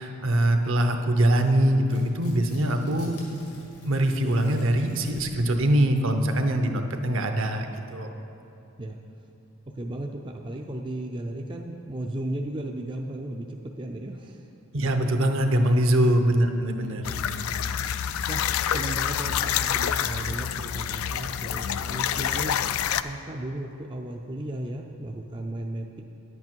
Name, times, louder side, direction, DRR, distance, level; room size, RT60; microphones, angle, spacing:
voice 1, 0.0-3.2 3.8-7.7 7.9-8.1 14.7-17.1, right 1 dB, 65° right, 6 dB, 0.7 m, -23 dB
Tearing, 1.8-5.5, left 1 dB, 90° left, 2.0 m, -49 dB
voice 2, 9.8-14.5 16.0-16.2 16.9-17.4 18.3-18.4 18.7-22.6 23.0-26.0, right 1 dB, 20° right, 2 dB, 0.4 m, -35 dB
sound 1, 17.0-23.0, left 9 dB, 75° left, 0.3 m, -27 dB
10.5 x 8.3 x 4.5 m, 2.9 s
head